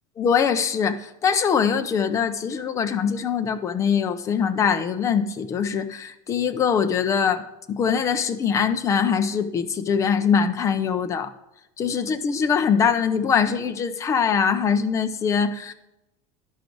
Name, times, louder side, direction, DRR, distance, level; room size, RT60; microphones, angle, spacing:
voice 1, 0.2-11.3 11.8-15.7, left 6 dB, 20° left, 9 dB, 0.4 m, -23 dB
12.0 x 5.2 x 4.6 m, 0.92 s
cardioid pair, 170°, 16 cm